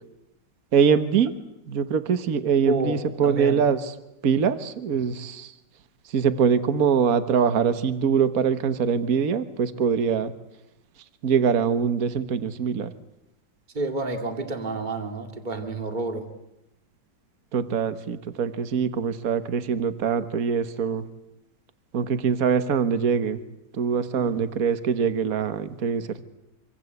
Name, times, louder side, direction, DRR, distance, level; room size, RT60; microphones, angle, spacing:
voice 1, 0.7-1.3 1.7-3.9 4.2-5.5 6.1-10.3 11.2-12.9 17.5-21.0 21.9-23.4 23.7-26.2, right 7 dB, 55° right, 11 dB, 1.7 m, -23 dB
voice 2, 2.7-3.6 13.7-16.3 24.2-24.4, right 2 dB, 25° right, 5 dB, 2.4 m, -29 dB
26.0 x 25.5 x 8.1 m, 0.89 s
omnidirectional pair, 1.9 m